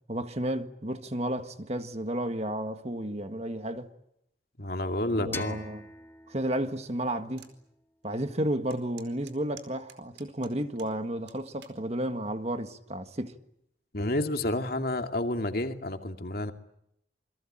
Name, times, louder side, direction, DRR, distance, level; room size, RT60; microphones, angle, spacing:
voice 1, 0.1-3.9 5.2-5.8 6.3-7.5 8.0-13.3, right 1 dB, 35° right, 1.7 m, -32 dB
voice 2, 4.6-5.6 13.9-16.5, left 1 dB, 55° left, 2.4 m, -30 dB
sound 1, 5.3-8.2, left 3 dB, 15° left, 2.0 m, -44 dB
sound 2, 7.4-7.5 8.0-8.1 8.7-10.9 11.3-11.8 12.5-12.8, right 9 dB, 80° right, 4.5 m, -51 dB
28.5 x 23.0 x 8.9 m
head